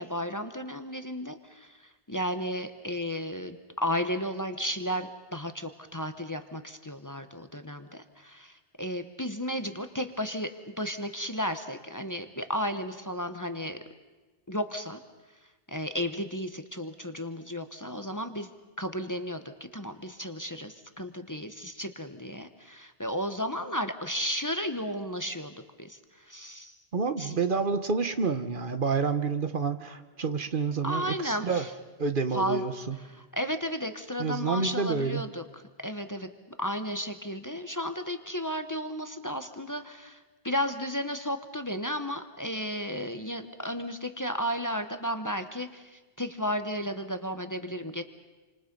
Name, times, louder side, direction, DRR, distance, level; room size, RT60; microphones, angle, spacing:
voice 1, 0.0-13.8 14.5-15.0 15.7-18.5 18.8-26.7 27.2-27.4 30.8-31.7 32.3-32.6 33.3-35.4 35.8-48.0, equal, 20° left, 8 dB, 1.1 m, -33 dB
voice 2, 26.9-31.7 32.0-33.0 34.2-35.3, right 5 dB, 55° right, 10 dB, 1.2 m, -29 dB
28.5 x 27.0 x 5.4 m, 1.2 s
omnidirectional pair, 1.0 m